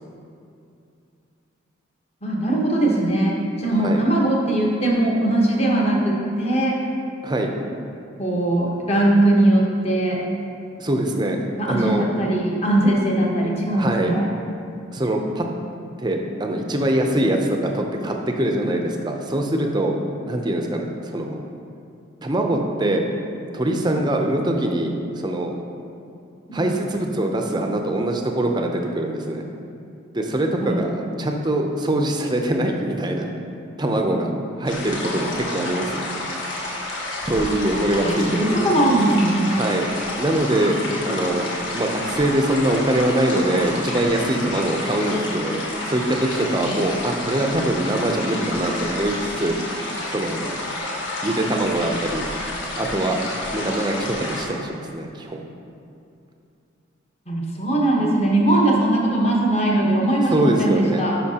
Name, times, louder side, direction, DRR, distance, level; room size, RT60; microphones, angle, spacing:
voice 1, 2.2-6.8 8.2-10.2 11.6-14.3 26.5-26.7 30.6-30.8 38.0-39.6 57.3-61.2, right 1 dB, 30° left, -2 dB, 1.1 m, -20 dB
voice 2, 10.8-12.1 13.8-14.1 14.9-15.4 16.0-20.0 20.3-21.4 22.2-23.1 23.5-25.5 26.5-29.4 30.1-33.3 33.8-36.1 37.2-38.7 39.4-39.9 40.2-40.8 41.0-41.5 41.7-49.5 50.1-50.5 51.2-52.2 52.8-53.2 53.5-55.4 60.3-61.1, right 1 dB, 20° right, 2 dB, 0.6 m, -23 dB
sound 1, 34.6-54.4, left 2 dB, 65° left, 1.4 m, -30 dB
11.0 x 5.6 x 2.9 m, 2.5 s
head